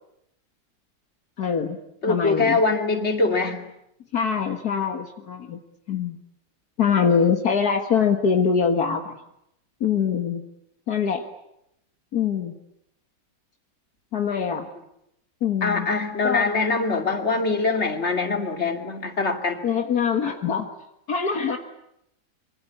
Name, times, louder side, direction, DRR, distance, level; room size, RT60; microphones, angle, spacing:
voice 1, 1.4-1.8 2.1-2.6 4.1-5.6 5.9-6.2 6.8-9.2 9.8-10.4 10.9-11.2 12.1-12.6 14.1-14.7 15.4-15.9 16.2-16.5 19.6-20.7 21.1-21.6, left 6 dB, 65° left, 4 dB, 2.1 m, -23 dB
voice 2, 2.0-3.6 14.4-14.5 15.6-19.6, left 3 dB, 40° left, 5 dB, 3.0 m, -23 dB
26.5 x 25.0 x 8.5 m, 0.81 s
omnidirectional pair, 1.8 m